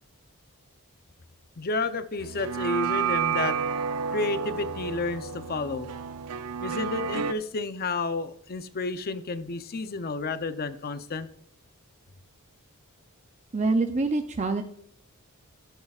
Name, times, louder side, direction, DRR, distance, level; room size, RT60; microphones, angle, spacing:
voice 1, 1.6-3.6 4.1-5.9 6.6-11.3, left 3 dB, 45° left, 11 dB, 0.6 m, -31 dB
sound 1, 2.2-7.3, right 7 dB, 90° right, 0.6 m, -30 dB
voice 2, 13.5-14.6, right 3 dB, 30° right, 6 dB, 0.5 m, -25 dB
13.0 x 9.9 x 2.4 m, 0.66 s
head